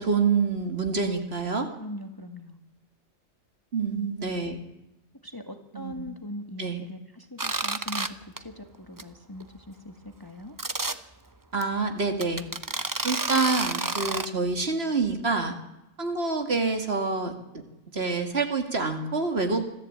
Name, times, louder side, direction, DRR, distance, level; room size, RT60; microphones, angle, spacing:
voice 1, 0.0-1.7 3.7-4.6 5.7-6.1 6.6-6.8 11.5-12.4 13.0-15.5 16.0-17.3 17.9-19.6, right 4 dB, 50° right, 6 dB, 2.4 m, -27 dB
voice 2, 1.8-2.6 3.8-4.1 5.2-10.6, left 1 dB, 15° left, 6 dB, 1.8 m, -41 dB
sound 1, 7.4-8.1 8.4-8.6 9.0-9.1 9.4-9.5 10.6-11.0 11.6-11.7 12.2-14.3, right 3 dB, 20° right, 0.7 m, -29 dB
25.5 x 14.5 x 8.7 m, 0.92 s
omnidirectional pair, 1.3 m